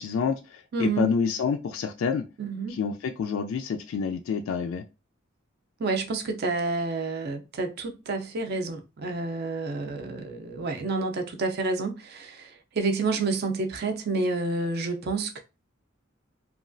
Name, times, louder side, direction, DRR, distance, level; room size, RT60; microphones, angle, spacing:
voice 1, 0.0-2.2 2.7-4.8, left 6 dB, 75° left, 0.3 m, -28 dB
voice 2, 0.7-1.1 2.4-2.8 5.8-15.4, right 3 dB, 50° right, 0.5 m, -29 dB
3.0 x 2.3 x 2.5 m
head